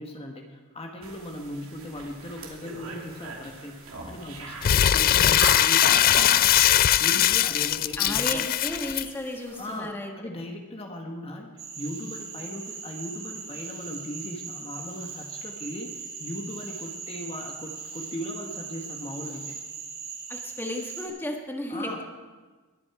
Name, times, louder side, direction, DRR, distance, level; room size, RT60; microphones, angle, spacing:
voice 1, 0.0-6.0 7.0-8.5 9.5-9.9 10.2-11.5 11.8-19.5 21.7-22.1, equal, 30° left, 2 dB, 1.3 m, -38 dB
sound 1, 1.0-9.8, right 3 dB, 75° right, 2.6 m, -39 dB
Crumpling crinkling, 4.6-9.0, left 11 dB, 45° left, 0.3 m, -20 dB
voice 2, 8.0-10.1 20.3-22.1, left 1 dB, 10° left, 1 dB, 1.3 m, -34 dB
Cricket / Frog, 11.6-21.1, right 5 dB, 55° right, 3.3 m, -39 dB
21.0 x 8.9 x 4.8 m, 1.3 s
head